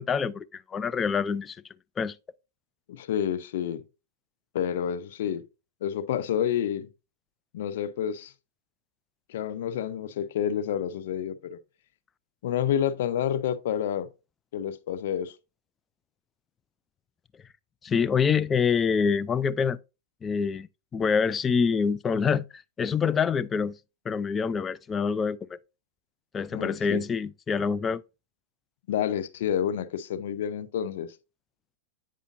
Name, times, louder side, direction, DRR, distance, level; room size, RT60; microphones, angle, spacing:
voice 1, 0.0-1.6 2.0-2.2 17.8-19.8 20.2-20.7 20.9-23.7 24.1-25.6 26.3-28.0, left 6 dB, 20° left, 0.3 m, -26 dB
voice 2, 2.9-3.8 4.5-5.4 5.8-6.9 7.5-8.3 9.3-11.6 12.4-14.1 14.5-15.3 26.5-27.0 28.9-31.1, left 9 dB, 65° left, 0.7 m, -29 dB
8.3 x 5.0 x 2.6 m
hypercardioid pair, 120°, 0 cm